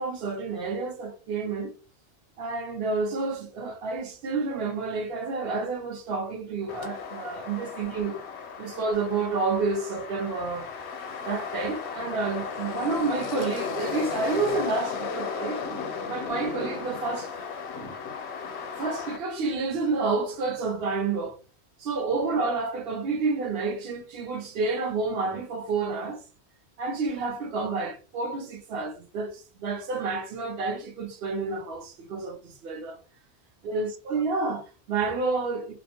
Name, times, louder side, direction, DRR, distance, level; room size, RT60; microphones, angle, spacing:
voice 1, 0.0-1.7 2.4-8.2 8.6-10.7 11.2-15.6 16.1-17.3 17.8-17.9 18.8-21.4 21.8-26.2 26.8-33.0 33.6-35.7, right 4 dB, 65° right, 0.8 m, -29 dB
sound 1, 6.7-19.2, left 5 dB, 80° left, 0.9 m, -35 dB
2.3 x 2.1 x 2.8 m
omnidirectional pair, 1.1 m